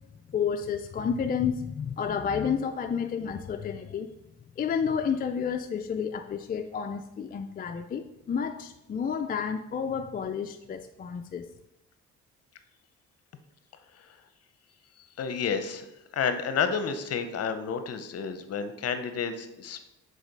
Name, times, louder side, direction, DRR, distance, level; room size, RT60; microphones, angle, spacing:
voice 1, 0.3-4.1 4.6-11.5, left 7 dB, 30° left, 5 dB, 0.4 m, -30 dB
voice 2, 15.2-15.9 16.1-19.9, left 6 dB, 55° left, 9 dB, 0.7 m, -30 dB
5.1 x 4.0 x 5.2 m, 0.89 s
cardioid pair, 90°, 30 cm